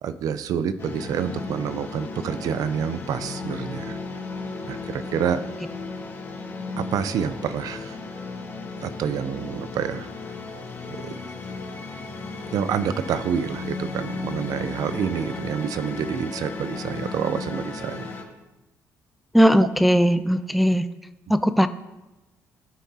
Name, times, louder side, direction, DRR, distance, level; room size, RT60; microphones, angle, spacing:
voice 1, 0.0-4.0 4.6-5.4 6.8-8.0 8.8-10.1 10.9-11.2 12.5-18.1 19.6-19.7 21.3-21.4, right 8 dB, 70° right, 12 dB, 0.6 m, -28 dB
sound 1, 0.8-18.2, left 3 dB, 40° left, 1.5 m, -35 dB
voice 2, 19.3-20.9 21.3-21.7, equal, ahead, 11 dB, 0.4 m, -18 dB
16.5 x 6.0 x 2.8 m, 1.0 s
cardioid pair, 85°, 6 cm